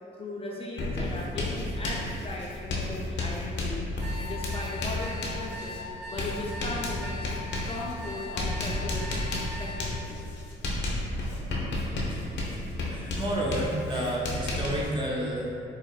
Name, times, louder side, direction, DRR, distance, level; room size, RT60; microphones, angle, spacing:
voice 1, 0.2-3.8 4.2-9.1 9.6-10.2, left 2 dB, 30° left, -3 dB, 0.4 m, -38 dB
Writing, 0.8-14.9, left 2 dB, 65° left, 0.7 m, -32 dB
sound 1, 4.0-9.8, left 1 dB, 50° right, 1.4 m, -40 dB
voice 2, 12.9-15.5, right 1 dB, 25° right, -3 dB, 0.6 m, -30 dB
4.7 x 2.1 x 2.3 m, 2.6 s
cardioid pair, 90°, 20 cm